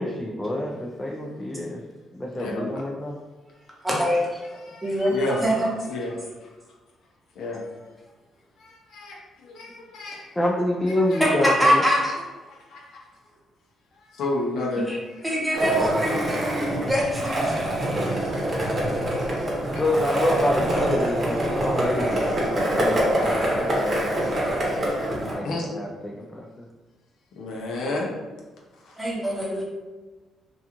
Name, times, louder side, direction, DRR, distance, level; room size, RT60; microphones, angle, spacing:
voice 1, 0.0-1.8 2.1-3.2 9.7-9.8 10.4-11.8 14.6-14.7 19.8-24.6 25.3-26.7, left 1 dB, 15° left, -1 dB, 0.3 m, -27 dB
voice 2, 2.4-2.7 4.7-5.4 5.9-6.2 7.4-7.6 8.6-10.3 11.1-11.2 12.7-13.0 14.1-14.9 16.5-16.6 25.4-25.7 27.4-28.1 28.9-29.0, left 2 dB, 75° left, -2 dB, 0.5 m, -31 dB
voice 3, 3.8-4.4 4.8-5.2 5.4-5.7 11.2-12.2 14.8-15.0 15.2-17.6 29.0-29.6, equal, 5° right, -4 dB, 0.8 m, -23 dB
Skateboard, 15.5-25.3, right 1 dB, 35° right, 0.8 m, -25 dB
2.4 x 2.3 x 2.9 m, 1.2 s
cardioid pair, 90°, 0 cm